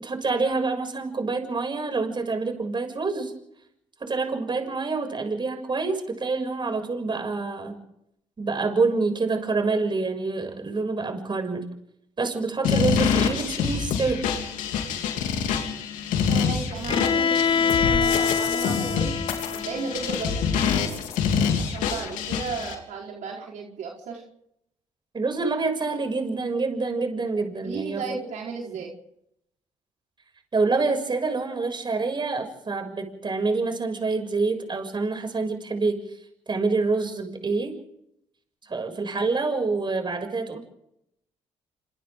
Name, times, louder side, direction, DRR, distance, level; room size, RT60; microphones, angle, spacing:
voice 1, 0.0-3.3 4.0-7.8 8.4-11.7 12.2-14.3 25.1-28.0 30.5-36.0 36.5-37.8 38.7-40.6, right 3 dB, 35° right, 5 dB, 7.0 m, -27 dB
sound 1, 12.6-22.7, left 6 dB, 90° left, 3.3 m, -26 dB
voice 2, 16.3-19.1 19.5-20.5 21.5-24.2 27.6-28.9, right 4 dB, 75° right, -1 dB, 4.6 m, -34 dB
Bowed string instrument, 16.9-20.8, left 6 dB, 40° left, 0.7 m, -25 dB
28.5 x 26.0 x 3.9 m, 0.77 s
cardioid pair, 70°, 13 cm